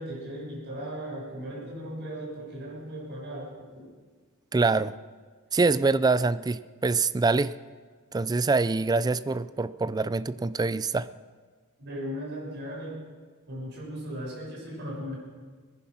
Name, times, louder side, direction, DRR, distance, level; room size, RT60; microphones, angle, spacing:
voice 1, 0.0-3.9 11.8-13.0 13.5-15.2, equal, 50° right, 6.1 m, -37 dB
voice 2, 4.5-5.0 5.5-7.6 8.1-11.1, right 3 dB, 20° right, 0.3 m, -25 dB
21.5 x 10.5 x 6.1 m
head